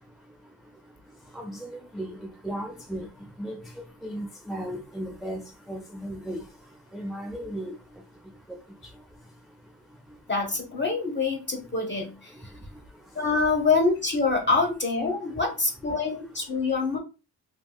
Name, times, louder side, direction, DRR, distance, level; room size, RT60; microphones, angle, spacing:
voice 1, 1.3-2.1 2.4-3.1 3.4-3.6 4.0-5.4 5.7-6.4 6.9-7.7, equal, ahead, 0.4 m, -35 dB
voice 2, 10.3-12.4 13.1-17.0, left 4 dB, 25° left, 0.9 m, -25 dB
2.8 x 2.8 x 2.2 m
cardioid pair, 65°, 41 cm